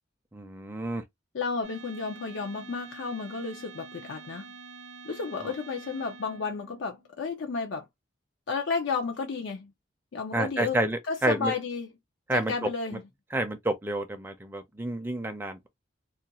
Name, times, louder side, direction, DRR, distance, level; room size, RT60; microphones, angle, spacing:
voice 1, 0.3-1.0 5.4-5.5 10.3-11.5 12.3-12.5 13.3-15.7, right 1 dB, 10° right, 0.4 m, -29 dB
voice 2, 1.3-4.5 5.0-7.9 8.5-9.7 10.1-10.8 11.1-11.9 12.3-13.0, left 4 dB, 70° left, 0.4 m, -32 dB
sound 1, 1.6-7.2, right 3 dB, 60° right, 0.6 m, -47 dB
2.4 x 2.2 x 2.7 m
head